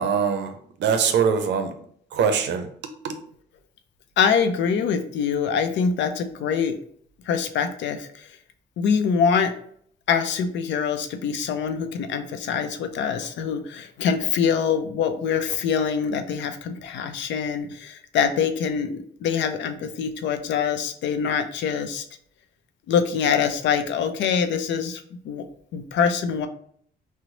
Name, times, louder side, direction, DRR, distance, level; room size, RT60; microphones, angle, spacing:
voice 1, 0.0-1.7 2.1-2.7 3.0-3.2, right 6 dB, 70° right, 7 dB, 0.5 m, -23 dB
voice 2, 4.2-6.8 7.3-8.3 8.8-9.5 10.1-22.0 22.9-25.5 25.7-26.5, left 6 dB, 75° left, 8 dB, 0.5 m, -24 dB
3.0 x 2.0 x 3.8 m, 0.62 s
cardioid pair, 75°, 19 cm